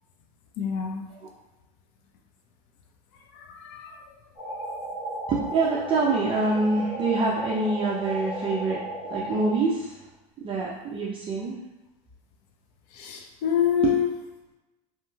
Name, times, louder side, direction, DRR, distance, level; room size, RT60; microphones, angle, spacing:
voice 1, 0.6-1.0 3.3-3.9 12.9-14.1, left 9 dB, 55° left, 2 dB, 0.6 m, -26 dB
sound 1, 4.4-9.5, right 1 dB, 10° right, 1.3 m, -34 dB
voice 2, 5.3-8.8 9.1-10.0 10.4-11.6 13.8-13.9, right 3 dB, 25° right, -4 dB, 0.4 m, -25 dB
2.9 x 2.8 x 2.3 m, 1.0 s
supercardioid pair, 115°, 20 cm